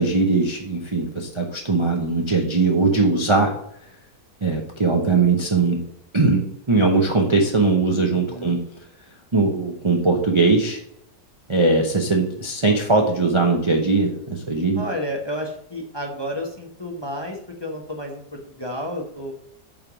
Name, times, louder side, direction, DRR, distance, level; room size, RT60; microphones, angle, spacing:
voice 1, 0.0-3.5 4.4-5.8 6.1-6.4 6.7-8.6 9.3-10.8 11.5-14.8, right 3 dB, 25° right, 1 dB, 0.7 m, -20 dB
voice 2, 8.1-8.6 14.8-19.3, equal, 20° left, 1 dB, 1.0 m, -31 dB
8.9 x 3.6 x 5.9 m, 0.71 s
omnidirectional pair, 1.6 m